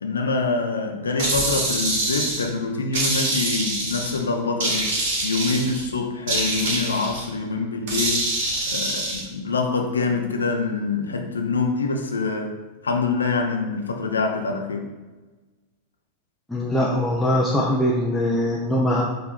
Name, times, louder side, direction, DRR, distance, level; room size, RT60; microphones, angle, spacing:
voice 1, 0.0-4.9 5.2-8.3 8.7-12.6 12.8-14.9, left 4 dB, 70° left, 4 dB, 0.5 m, -25 dB
sound 1, 1.2-2.5 2.9-4.2 4.6-5.8 6.3-7.2 7.9-9.2, right 2 dB, 50° right, 1.3 m, -25 dB
voice 2, 16.5-19.0, left 1 dB, 5° left, -5 dB, 0.6 m, -22 dB
4.7 x 2.6 x 4.1 m, 1.2 s
figure-of-eight pair, 90°, 0 cm